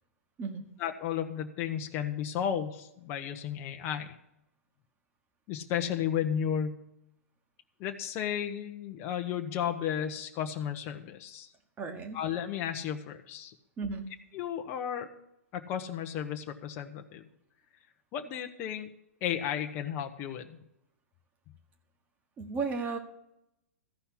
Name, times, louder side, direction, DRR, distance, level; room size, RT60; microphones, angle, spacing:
voice 1, 0.8-4.2 5.5-6.8 7.8-11.5 12.1-13.5 14.3-15.1 15.5-17.3 18.1-18.9 19.2-20.6, left 9 dB, 30° left, 5 dB, 0.9 m, -33 dB
voice 2, 11.8-12.2 13.8-14.1 22.4-23.0, right 4 dB, 20° right, 6 dB, 1.4 m, -34 dB
14.0 x 5.6 x 8.3 m, 0.81 s
figure-of-eight pair, 110°, 8 cm